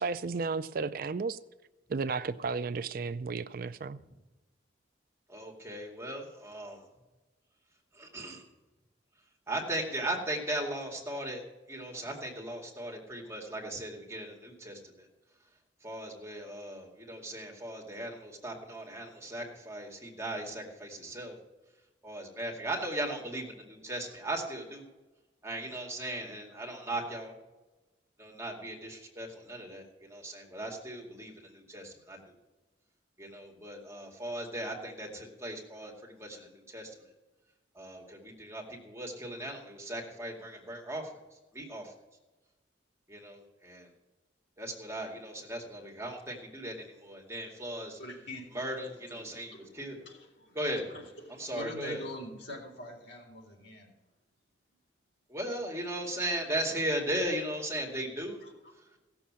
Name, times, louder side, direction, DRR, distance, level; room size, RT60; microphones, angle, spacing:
voice 1, 0.0-1.4 1.9-4.0, right 4 dB, 50° right, 14 dB, 0.4 m, -33 dB
voice 2, 5.3-6.9 7.9-8.5 9.5-15.1 15.8-21.4 22.0-24.8 25.4-27.4 28.2-32.3 33.2-37.0 37.7-41.1 41.5-41.9 43.1-43.9 44.6-48.0 48.5-50.0 50.6-50.8 51.4-52.0 55.3-58.4 58.7-58.9, right 1 dB, 15° right, -1 dB, 2.2 m, -37 dB
voice 3, 48.0-53.9 58.4-59.0, left 1 dB, 70° left, 0 dB, 3.8 m, -45 dB
16.5 x 7.0 x 7.5 m, 1.1 s
head